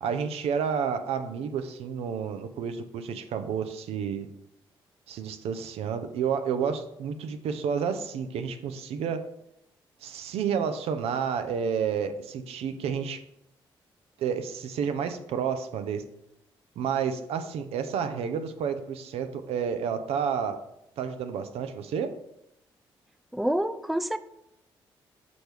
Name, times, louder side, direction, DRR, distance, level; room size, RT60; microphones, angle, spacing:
voice 1, 0.0-4.3 5.1-9.3 10.0-13.2 14.2-16.0 16.8-20.6 21.0-22.2, right 7 dB, 75° right, 9 dB, 0.6 m, -30 dB
voice 2, 23.3-24.2, right 1 dB, ahead, 13 dB, 0.4 m, -27 dB
6.2 x 4.5 x 3.4 m, 0.80 s
supercardioid pair, 55°, 10 cm